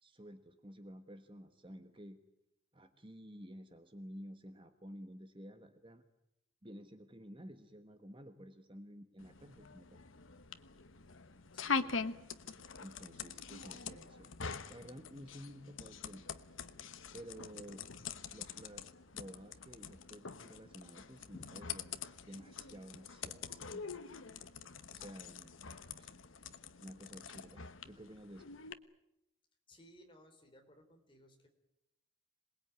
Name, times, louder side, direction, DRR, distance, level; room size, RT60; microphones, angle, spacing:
voice 1, 0.0-2.2 2.7-6.1 6.6-10.0 12.8-14.3 14.7-16.2 17.1-17.8 18.3-22.0 22.3-24.2 24.9-25.6 26.0-26.1 26.8-28.5, equal, 25° right, 7 dB, 1.3 m, -52 dB
sound 1, 9.2-28.7, left 5 dB, 65° left, 1.2 m, -44 dB
voice 2, 11.5-12.2 29.7-31.5, equal, 25° left, 3 dB, 3.8 m, -62 dB
27.0 x 20.0 x 9.5 m, 0.87 s
head